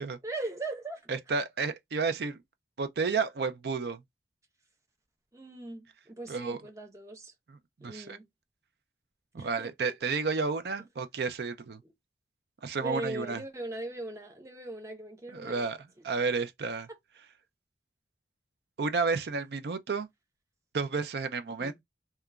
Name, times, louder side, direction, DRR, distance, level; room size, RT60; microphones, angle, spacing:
voice 1, 0.2-1.0 5.3-7.3 7.8-8.3 9.4-9.9 12.8-15.7 21.6-21.8, right 2 dB, 15° right, 0.6 m, -39 dB
voice 2, 1.1-2.4 2.8-4.0 6.3-6.6 7.5-8.2 9.3-11.8 12.6-13.4 15.3-16.9 18.8-20.1 20.7-21.8, right 4 dB, 70° right, 0.4 m, -31 dB
2.9 x 2.2 x 2.3 m
head